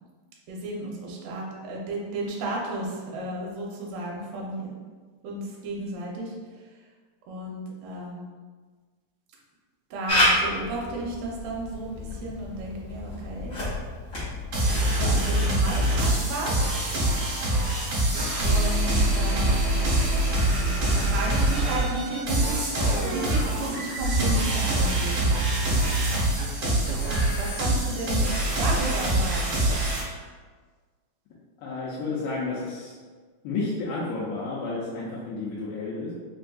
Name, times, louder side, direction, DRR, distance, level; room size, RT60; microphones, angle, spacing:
voice 1, 0.5-4.7 5.2-6.7 7.3-8.2 9.9-13.6 14.8-16.8 18.4-19.7 20.9-22.7 23.1-25.3 27.4-28.3 28.6-29.6 30.1-30.2, right 2 dB, 75° right, -2 dB, 2.3 m, -33 dB
Camera, 10.1-15.5, left 1 dB, 50° left, 1.1 m, -29 dB
sound 1, 14.5-30.0, right 1 dB, 55° right, 1.6 m, -24 dB
voice 2, 31.6-32.9 33.4-36.1, left 3 dB, 85° left, -7 dB, 2.3 m, -31 dB
5.6 x 2.6 x 2.3 m, 1.5 s
omnidirectional pair, 4.2 m